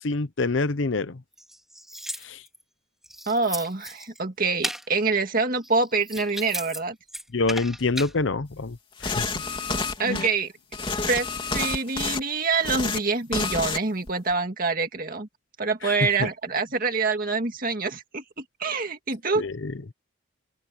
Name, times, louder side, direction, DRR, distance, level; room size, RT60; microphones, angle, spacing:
voice 1, 0.0-1.2 2.2-2.4 7.3-9.4 10.1-10.2 15.8-16.3 19.4-19.7, left 3 dB, 70° left, 0.8 m, -27 dB
sound 1, 1.3-2.6 3.0-4.2 4.6-4.9 5.6-6.8 7.1-8.1, right 1 dB, ahead, 3.9 m, -35 dB
voice 2, 3.3-7.0 10.0-10.5 11.1-11.3 11.5-15.3 15.6-18.2 18.6-19.4, right 4 dB, 45° right, 2.0 m, -26 dB
sound 2, 9.0-10.3 10.7-12.2 12.5-13.0 13.3-13.8 14.1-14.3, left 4 dB, 25° left, 3.6 m, -29 dB
open air
head